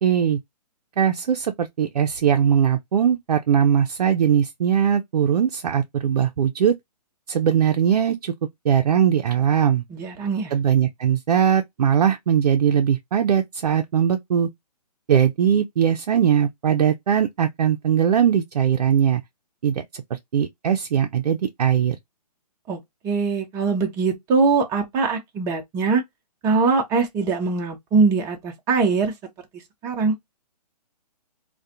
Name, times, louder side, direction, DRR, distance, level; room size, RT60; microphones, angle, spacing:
voice 1, 0.0-0.4 1.0-6.7 7.3-8.3 8.6-9.8 10.5-14.5 15.1-19.2 19.6-22.0, right 8 dB, 65° right, 0.4 m, -20 dB
voice 2, 9.9-10.5 22.7-26.0 26.4-29.1 29.8-30.1, right 4 dB, 15° right, 0.5 m, -22 dB
2.3 x 2.2 x 2.7 m
figure-of-eight pair, 135°, 21 cm